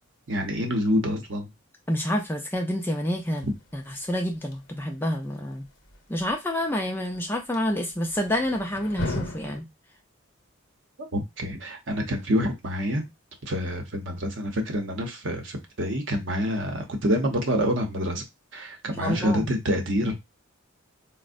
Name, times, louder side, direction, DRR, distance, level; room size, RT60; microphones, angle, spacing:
voice 1, 0.3-1.5 3.4-3.5 11.1-13.0 13.5-18.2 18.5-20.1, equal, 60° right, 0.8 m, -27 dB
voice 2, 1.9-3.5 3.7-5.6 6.1-9.7 19.0-19.5, equal, 10° left, 0.3 m, -28 dB
sound 1, 3.0-9.6, left 2 dB, 60° left, 0.7 m, -39 dB
4.3 x 2.0 x 2.5 m
head